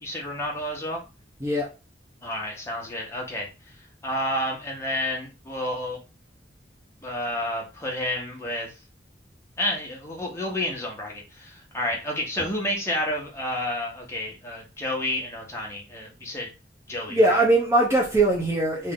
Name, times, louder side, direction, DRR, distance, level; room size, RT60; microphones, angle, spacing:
voice 1, 0.0-1.0 2.2-3.5 4.0-6.0 7.0-8.7 9.6-16.5 16.9-17.4, left 1 dB, 15° left, -2 dB, 1.1 m, -30 dB
voice 2, 17.1-18.9, right 2 dB, 15° right, -2 dB, 0.7 m, -21 dB
3.6 x 2.6 x 3.7 m, 0.31 s
head